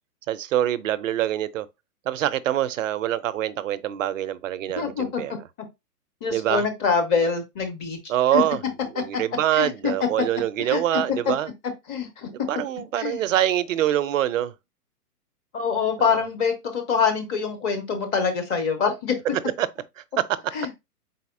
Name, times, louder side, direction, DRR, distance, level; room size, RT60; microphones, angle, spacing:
voice 1, 0.3-1.7 2.1-5.3 6.3-6.7 8.1-8.6 8.9-11.5 12.3-14.5 16.0-16.2 19.6-19.7 20.2-20.4, right 12 dB, 55° right, 0.5 m, -25 dB
voice 2, 4.8-5.4 6.2-8.0 8.3-8.4 9.1-9.2 9.5-10.1 10.6-11.0 11.9-12.3 13.0-13.2 15.5-19.2 20.5-20.7, left 6 dB, 25° left, 0.8 m, -25 dB
4.1 x 4.0 x 2.5 m
hypercardioid pair, 125°, 47 cm